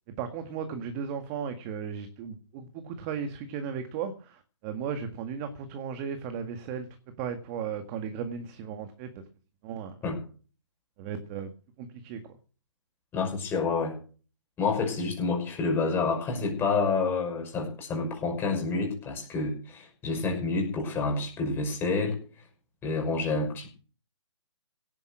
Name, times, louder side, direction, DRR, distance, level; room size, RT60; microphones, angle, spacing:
voice 1, 0.2-6.9 7.2-9.1 9.6-9.9 11.0-11.5 11.8-12.2, right 7 dB, 25° right, 8 dB, 1.8 m, -35 dB
voice 2, 13.1-13.9 14.6-22.2 22.8-23.7, left 4 dB, 15° left, 1 dB, 6.0 m, -28 dB
17.0 x 9.5 x 6.3 m, 0.39 s
hypercardioid pair, 150°, 16 cm